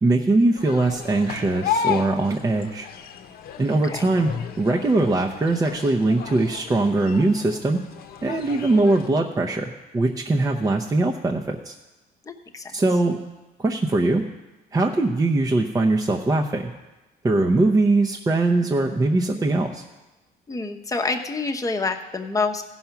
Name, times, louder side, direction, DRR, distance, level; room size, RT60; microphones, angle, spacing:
voice 1, 0.0-2.9 3.6-4.3 4.6-7.8 8.2-11.7 12.7-13.2 13.6-14.2 14.7-16.7 17.2-19.8, right 2 dB, 20° right, 0 dB, 0.7 m, -21 dB
sound 1, 0.5-9.1, left 7 dB, 65° left, 0.9 m, -33 dB
voice 2, 12.3-12.7 20.5-22.6, left 3 dB, 20° left, 4 dB, 0.9 m, -27 dB
15.0 x 5.7 x 5.9 m, 1.1 s
cardioid pair, 110°, 17 cm